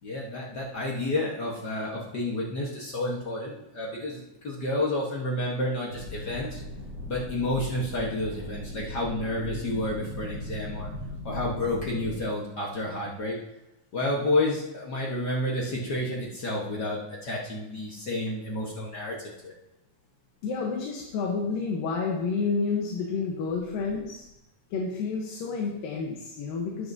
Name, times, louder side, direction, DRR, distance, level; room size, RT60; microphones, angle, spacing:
voice 1, 0.0-6.6 7.1-10.9 11.2-13.4 13.9-19.2 19.4-19.5, left 1 dB, 60° left, -3 dB, 1.0 m, -30 dB
sound 1, 5.9-12.2, left 1 dB, 30° right, 3.3 m, -38 dB
voice 2, 20.4-24.2 24.7-26.9, left 4 dB, 85° left, -1 dB, 2.8 m, -30 dB
12.5 x 9.8 x 2.7 m, 0.89 s
omnidirectional pair, 3.9 m